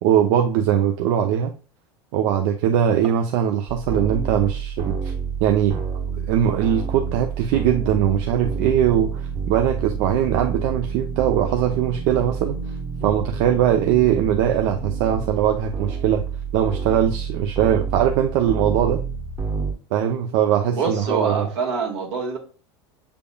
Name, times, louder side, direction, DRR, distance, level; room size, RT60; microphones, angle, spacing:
voice 1, 0.0-1.5 2.1-5.1 5.4-5.8 6.3-12.6 13.0-16.2 16.5-19.0 19.9-21.5, right 9 dB, 60° right, 0.5 m, -21 dB
sound 1, 3.7-19.7, right 6 dB, 30° right, 1.1 m, -28 dB
voice 2, 20.7-22.4, right 5 dB, 75° right, 1.7 m, -25 dB
6.9 x 3.5 x 2.2 m
hypercardioid pair, 105°, 15 cm